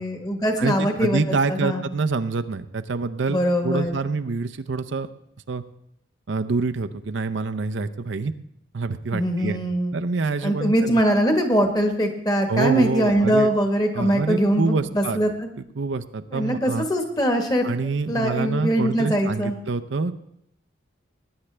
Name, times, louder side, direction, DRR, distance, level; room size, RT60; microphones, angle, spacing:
voice 1, 0.0-1.2 1.5-1.8 3.3-4.0 9.1-10.0 10.4-15.3 16.3-17.6 18.1-19.5, equal, 20° left, 5 dB, 1.3 m, -22 dB
voice 2, 0.6-5.1 5.5-5.6 6.3-8.3 8.7-9.6 9.9-11.0 12.5-13.5 13.9-15.2 15.8-16.9 17.6-20.1, right 4 dB, 80° right, 9 dB, 0.6 m, -26 dB
19.5 x 9.7 x 3.3 m, 0.74 s
head